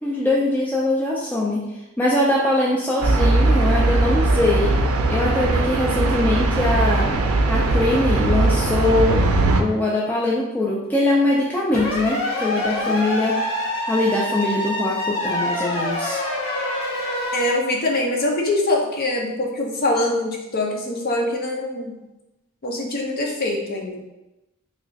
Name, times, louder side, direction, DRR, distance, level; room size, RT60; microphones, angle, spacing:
voice 1, 0.0-1.6 2.0-4.8 5.1-7.1 7.5-9.2 9.6-13.4 13.9-16.2, left 2 dB, 10° left, -5 dB, 0.4 m, -22 dB
sound 1, 3.0-9.6, right 2 dB, 85° right, 0.4 m, -19 dB
sound 2, 11.7-17.6, left 1 dB, 65° left, 0.9 m, -26 dB
voice 2, 17.3-22.0 22.6-24.0, left 2 dB, 45° left, 0 dB, 0.6 m, -23 dB
3.1 x 2.4 x 3.9 m, 0.99 s
head